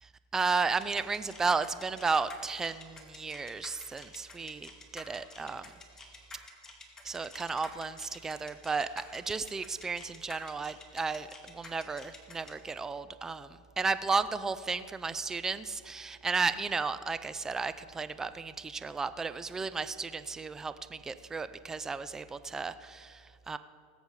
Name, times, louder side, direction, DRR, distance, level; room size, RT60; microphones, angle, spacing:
voice 1, 0.0-5.7 7.0-23.6, right 4 dB, 15° right, 13 dB, 0.5 m, -34 dB
sound 1, 0.8-12.5, left 3 dB, 15° left, 1.7 m, -49 dB
19.5 x 8.2 x 4.8 m, 2.2 s
supercardioid pair, 130°, 4 cm